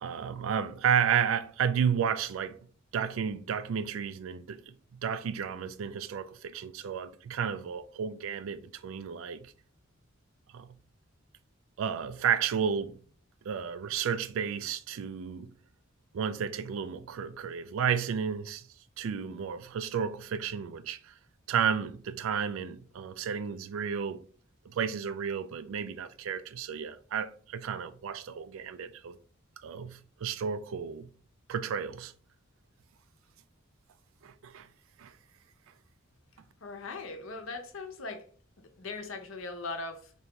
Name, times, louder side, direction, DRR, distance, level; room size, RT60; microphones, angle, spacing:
voice 1, 0.0-2.6 2.9-4.7 5.0-9.5 10.5-10.7 11.8-13.0 13.4-15.5 16.1-18.7 19.0-21.1 21.5-24.2 24.7-29.1 29.6-31.1 31.5-32.1 34.2-34.7 35.0-35.1, right 7 dB, 70° right, 0.3 m, -32 dB
voice 2, 36.6-38.3 38.6-40.1, left 3 dB, 70° left, 0.7 m, -39 dB
2.9 x 2.8 x 3.3 m
head